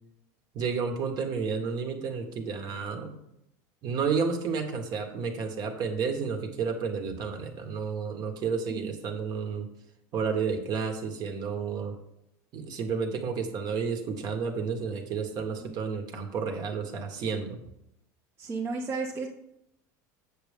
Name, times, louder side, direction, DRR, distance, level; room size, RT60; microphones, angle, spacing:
voice 1, 0.5-3.2 3.8-9.7 10.1-11.9 12.5-17.6, right 5 dB, 45° right, 5 dB, 1.5 m, -31 dB
voice 2, 18.4-19.3, right 4 dB, 30° right, -1 dB, 1.0 m, -33 dB
7.7 x 6.5 x 3.6 m, 0.79 s
supercardioid pair, 120°, 9 cm